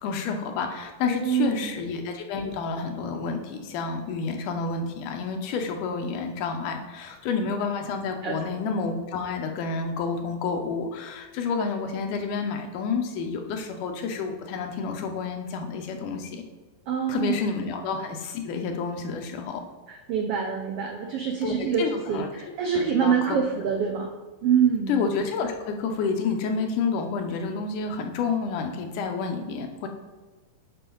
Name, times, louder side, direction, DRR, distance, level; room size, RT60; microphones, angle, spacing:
voice 1, 0.0-16.4 17.1-19.7 21.4-22.3 22.7-23.4 24.9-29.9, left 5 dB, 85° left, 4 dB, 2.4 m, -29 dB
voice 2, 1.0-1.7 8.2-8.4 16.9-17.4 19.9-24.1 24.4-25.0, right 7 dB, 90° right, 3 dB, 1.3 m, -25 dB
9.6 x 5.0 x 3.9 m, 1.3 s
omnidirectional pair, 3.5 m